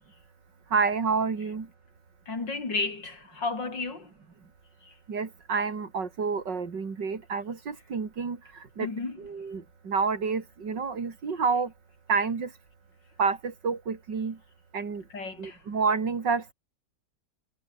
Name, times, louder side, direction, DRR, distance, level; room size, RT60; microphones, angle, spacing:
voice 1, 0.7-1.7 5.1-8.9 9.2-11.7 12.1-12.5 13.2-14.4 14.7-15.0 15.4-16.5, right 5 dB, 75° right, 3.4 m, -29 dB
voice 2, 2.3-4.1 4.8-4.9 8.8-9.2 15.1-15.6, left 3 dB, 80° left, 5.0 m, -33 dB
omnidirectional pair, 1.9 m